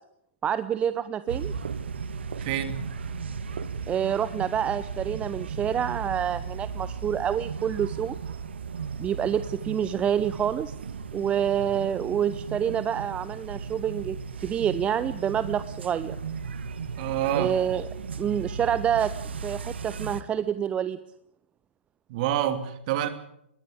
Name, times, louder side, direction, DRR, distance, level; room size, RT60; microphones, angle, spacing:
voice 1, 0.4-1.5 3.9-8.2 9.0-10.7 11.1-16.2 17.3-17.9 18.2-19.1 19.4-21.0, right 9 dB, 20° right, 14 dB, 0.8 m, -27 dB
sound 1, 1.3-20.2, right 5 dB, 65° right, 1.7 m, -36 dB
voice 2, 2.4-2.8 17.0-17.5 22.1-23.1, right 11 dB, 40° right, 10 dB, 2.8 m, -27 dB
21.0 x 18.0 x 8.7 m, 0.74 s
figure-of-eight pair, 115°, 6 cm